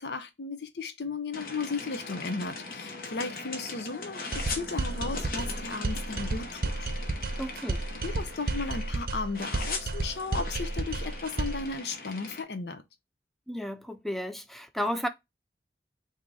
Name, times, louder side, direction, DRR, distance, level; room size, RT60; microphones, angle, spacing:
voice 1, 0.0-6.9 8.0-12.8, left 4 dB, 75° left, 0.7 m, -35 dB
sound 1, 1.3-9.0 9.3-12.4, left 3 dB, 55° left, 1.0 m, -40 dB
sound 2, 4.3-11.7, right 2 dB, 55° right, 0.6 m, -32 dB
voice 2, 7.4-7.8 13.5-15.1, equal, ahead, 0.3 m, -33 dB
3.7 x 2.8 x 4.7 m
head